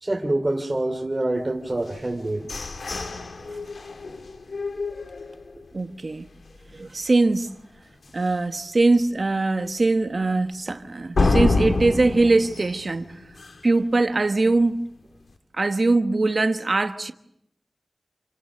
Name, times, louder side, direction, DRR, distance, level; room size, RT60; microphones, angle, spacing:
voice 1, 0.0-2.5, right 2 dB, 30° right, 3.3 m, -26 dB
sound 1, 1.9-5.8 6.2-6.3 6.7-7.1 7.5-7.6 8.1-8.2 11.1-13.8, left 3 dB, 80° left, 2.0 m, -27 dB
voice 2, 5.7-6.3 6.7-7.5 8.1-13.2 13.6-14.9 15.5-17.1, right 2 dB, 55° right, 1.3 m, -22 dB
29.5 x 29.0 x 6.4 m
wide cardioid pair, 70°, 0 cm